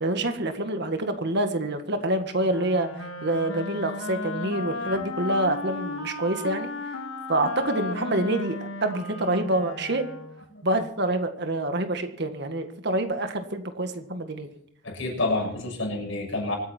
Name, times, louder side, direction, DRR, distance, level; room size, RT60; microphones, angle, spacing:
voice 1, 0.0-2.9 3.2-6.7 7.3-10.1 10.6-14.5, right 1 dB, 55° right, 7 dB, 1.8 m, -27 dB
Wind instrument woodwind instrument, 2.4-10.5, left 3 dB, 85° left, 2.0 m, -35 dB
voice 2, 14.8-16.5, left 2 dB, 70° left, -1 dB, 7.1 m, -28 dB
25.5 x 9.5 x 4.5 m, 0.67 s
head